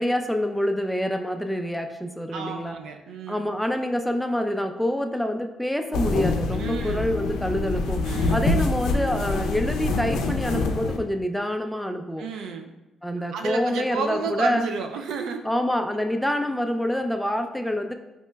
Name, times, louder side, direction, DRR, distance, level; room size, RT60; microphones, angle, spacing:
voice 1, 0.0-2.8 3.3-12.2 13.0-14.7 15.4-18.0, left 1 dB, ahead, 5 dB, 0.3 m, -26 dB
voice 2, 2.3-3.4 6.6-7.1 8.0-8.4 12.2-12.7 13.3-15.5, right 5 dB, 80° right, 4 dB, 0.3 m, -31 dB
sound 1, 5.9-11.0, left 3 dB, 85° left, 0.4 m, -25 dB
4.3 x 2.9 x 2.2 m, 1.0 s
cardioid pair, 90°, 0 cm